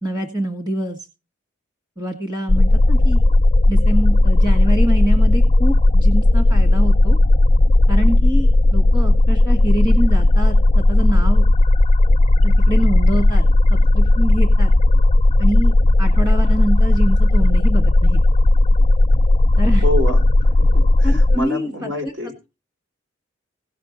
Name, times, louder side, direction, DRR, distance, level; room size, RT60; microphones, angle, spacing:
voice 1, 0.0-1.0 2.0-3.2 3.7-7.2 7.9-11.4 12.4-14.7 15.4-18.2 19.6-19.8 21.0-22.1, right 1 dB, 25° right, 1.7 m, -25 dB
sound 1, 2.5-21.4, left 2 dB, 35° left, 0.5 m, -14 dB
voice 2, 19.8-22.3, left 1 dB, 65° right, 4.2 m, -27 dB
17.5 x 6.7 x 4.0 m
head